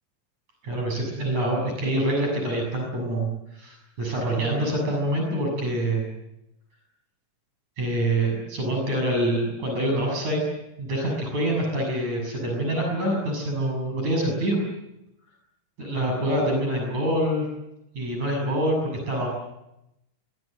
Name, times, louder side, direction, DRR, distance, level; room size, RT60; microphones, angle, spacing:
voice 1, 0.6-6.1 7.8-10.4 10.8-14.6 15.8-17.5 17.9-19.3, right 1 dB, 60° right, 1 dB, 8.2 m, -26 dB
24.5 x 23.0 x 7.9 m, 0.88 s
omnidirectional pair, 3.7 m